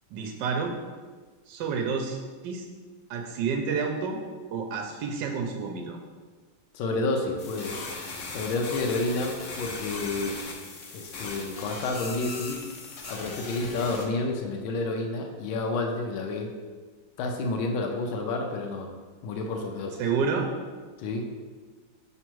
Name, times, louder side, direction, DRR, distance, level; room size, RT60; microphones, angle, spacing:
voice 1, 0.1-0.7 1.5-2.2 2.4-2.6 3.1-4.2 4.5-6.0 20.0-20.5, right 5 dB, 75° right, 2 dB, 1.2 m, -29 dB
voice 2, 6.7-7.8 8.3-10.4 10.9-12.6 13.1-16.5 17.2-18.9 19.2-20.0 21.0-21.3, left 2 dB, 80° left, 2 dB, 1.5 m, -30 dB
sound 1, 7.4-14.0, left 3 dB, 60° left, 0.8 m, -38 dB
6.1 x 3.7 x 4.5 m, 1.4 s
omnidirectional pair, 2.2 m